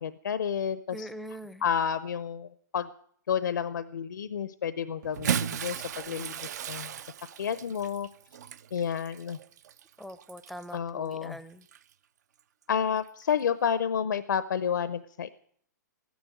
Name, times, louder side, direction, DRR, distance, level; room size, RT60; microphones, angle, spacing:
voice 1, 0.0-1.1 1.6-2.9 3.3-6.4 6.7-6.9 7.4-8.1 8.7-9.4 10.7-11.4 12.7-15.3, left 8 dB, 85° left, 14 dB, 0.7 m, -30 dB
voice 2, 0.9-1.6 10.0-11.7, equal, ahead, 14 dB, 0.6 m, -42 dB
Bathtub (filling or washing) / Splash splatter, 5.0-10.7 11.6-11.8 13.2-13.3, right 8 dB, 65° right, 0.7 m, -36 dB
14.0 x 10.5 x 9.2 m, 0.62 s
hypercardioid pair, 150°, 10 cm